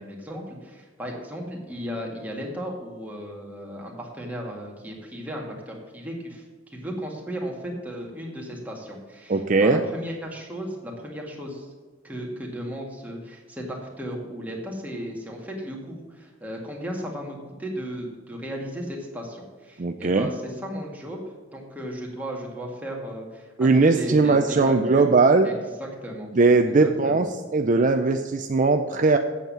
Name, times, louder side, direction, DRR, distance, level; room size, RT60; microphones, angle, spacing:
voice 1, 0.0-11.7 12.0-21.2 21.5-25.1 25.4-26.3 26.8-27.3, equal, 10° right, -1 dB, 1.9 m, -35 dB
voice 2, 9.3-9.8 19.8-20.3 23.6-25.5 26.3-27.3 27.5-29.2, right 3 dB, 40° right, 6 dB, 0.5 m, -19 dB
8.2 x 7.3 x 7.4 m, 1.4 s
head